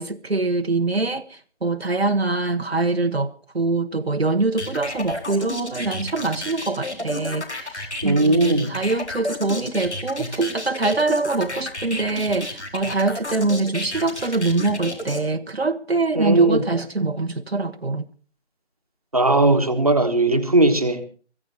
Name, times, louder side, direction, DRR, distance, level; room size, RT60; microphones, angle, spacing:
voice 1, 0.0-18.0, right 3 dB, 65° right, 1.2 m, -24 dB
sound 1, 4.6-15.2, left 2 dB, 75° left, 4.5 m, -31 dB
voice 2, 8.0-8.7 16.1-16.6 19.1-21.0, right 2 dB, 35° right, 1.5 m, -18 dB
24.5 x 15.0 x 2.8 m
figure-of-eight pair, 175°, 34 cm